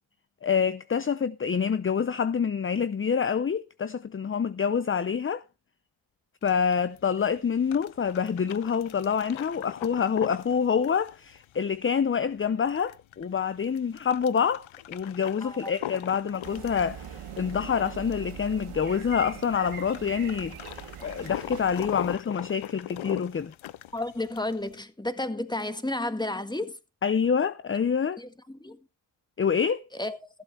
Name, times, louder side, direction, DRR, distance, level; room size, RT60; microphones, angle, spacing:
voice 1, 0.4-5.4 6.4-20.7 21.0-23.5 27.0-28.2 29.4-29.8, left 7 dB, 25° left, 0.6 m, -27 dB
sound 1, 6.4-24.8, left 13 dB, 70° left, 0.7 m, -41 dB
voice 2, 15.4-15.7 23.9-26.8 28.2-28.8 30.0-30.3, left 2 dB, 10° left, 1.6 m, -32 dB
sound 2, 16.4-22.2, right 9 dB, 90° right, 1.7 m, -42 dB
15.0 x 7.8 x 4.3 m
cardioid pair, 55°, 49 cm